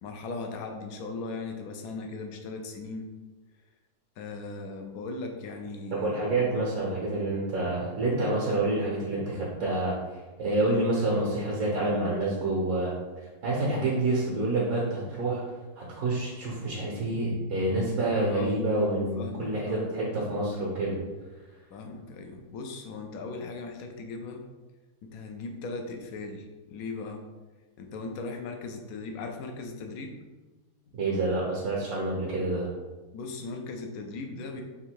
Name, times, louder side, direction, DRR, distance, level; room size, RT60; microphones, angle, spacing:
voice 1, 0.0-3.1 4.2-6.3 18.3-19.9 21.7-24.4 25.0-27.2 27.8-30.1 33.1-34.6, left 3 dB, 70° left, 3 dB, 1.0 m, -38 dB
voice 2, 5.9-10.0 10.4-12.9 13.4-15.4 15.8-21.0 31.0-32.7, right 2 dB, 65° right, -5 dB, 1.4 m, -28 dB
3.7 x 2.7 x 4.4 m, 1.2 s
omnidirectional pair, 1.7 m